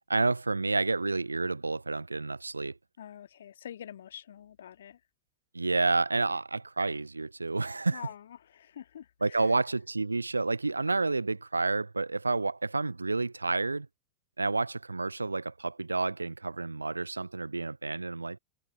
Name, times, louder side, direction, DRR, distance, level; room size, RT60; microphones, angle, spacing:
voice 1, 0.1-2.8 5.5-8.1 9.2-13.9 14.4-18.4, right 3 dB, 80° right, 0.5 m, -30 dB
voice 2, 3.0-5.0 7.9-8.3 8.5-9.4, left 10 dB, 65° left, 1.8 m, -46 dB
figure-of-eight pair, 90°, 0 cm